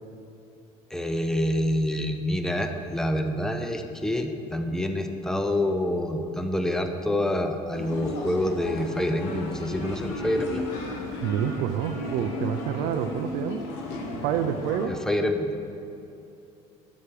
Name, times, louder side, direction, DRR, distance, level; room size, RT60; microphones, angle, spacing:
voice 1, 0.9-10.6 14.9-15.5, left 1 dB, 5° left, 6 dB, 0.5 m, -27 dB
sound 1, 7.7-14.9, left 2 dB, 85° left, 1.8 m, -35 dB
voice 2, 11.2-13.6 14.2-14.9, right 9 dB, 65° right, 7 dB, 0.5 m, -28 dB
11.5 x 7.2 x 5.0 m, 2.8 s
cardioid pair, 165°, 14 cm